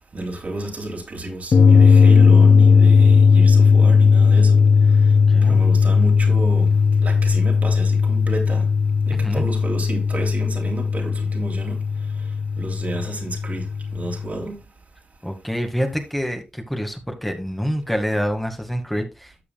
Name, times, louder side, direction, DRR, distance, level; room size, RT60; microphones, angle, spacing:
voice 1, 0.1-4.6 4.9-5.1 5.4-6.7 7.0-8.7 9.1-11.8 12.6-13.7 13.9-14.6, right 1 dB, 60° right, 3.2 m, -31 dB
sound 1, 1.5-14.4, left 5 dB, 75° left, 1.1 m, -16 dB
voice 2, 5.3-5.7 9.1-9.4 15.2-19.3, equal, 5° left, 2.1 m, -26 dB
13.0 x 7.0 x 2.4 m
cardioid pair, 45°, 3 cm